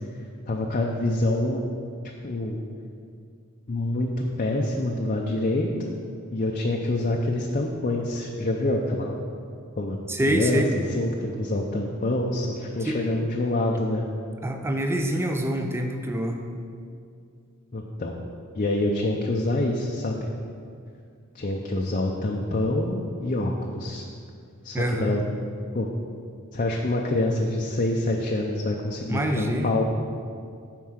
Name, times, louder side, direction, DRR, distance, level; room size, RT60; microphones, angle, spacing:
voice 1, 0.5-1.6 2.2-2.6 3.7-5.9 6.3-9.1 9.8-10.0 10.2-10.6 10.9-14.0 17.7-18.1 18.5-20.3 21.3-24.0 24.6-25.2 25.7-25.9 26.5-29.8, left 2 dB, 40° left, -1 dB, 0.6 m, -26 dB
voice 2, 10.1-10.7 12.8-13.0 14.4-16.4 24.7-25.1 29.1-29.7, right 1 dB, 10° right, 4 dB, 0.6 m, -26 dB
9.4 x 4.6 x 6.4 m, 2.3 s
head